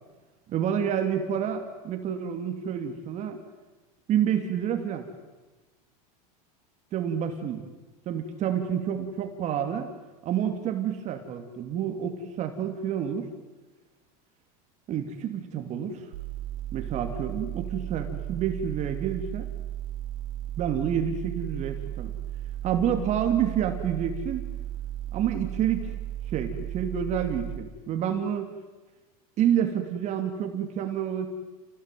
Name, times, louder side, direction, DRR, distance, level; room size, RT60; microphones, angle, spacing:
voice 1, 0.5-3.4 4.1-5.1 6.9-7.6 8.1-9.9 10.2-13.3 14.9-16.1 16.7-19.5 20.6-22.1 22.6-24.5 25.1-25.9 26.3-28.5 29.4-31.3, right 9 dB, 40° right, 6 dB, 2.9 m, -28 dB
sound 1, 16.1-27.6, right 12 dB, 75° right, 2.3 m, -35 dB
29.5 x 19.0 x 9.3 m, 1.2 s
supercardioid pair, 135°, 19 cm